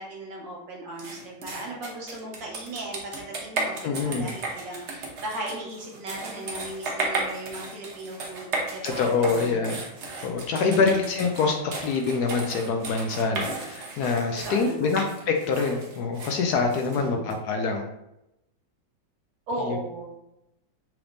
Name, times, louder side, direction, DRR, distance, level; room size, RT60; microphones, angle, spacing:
voice 1, 0.0-9.7 10.5-11.0 14.4-15.1 16.9-17.3 19.5-20.1, right 1 dB, 80° right, -2 dB, 1.8 m, -37 dB
sound 1, 1.0-17.4, right 3 dB, 50° right, 0.9 m, -35 dB
voice 2, 3.8-4.3 8.8-9.8 10.2-17.8 19.6-19.8, left 4 dB, 70° left, 4 dB, 1.0 m, -25 dB
5.9 x 3.4 x 2.6 m, 0.88 s
omnidirectional pair, 1.9 m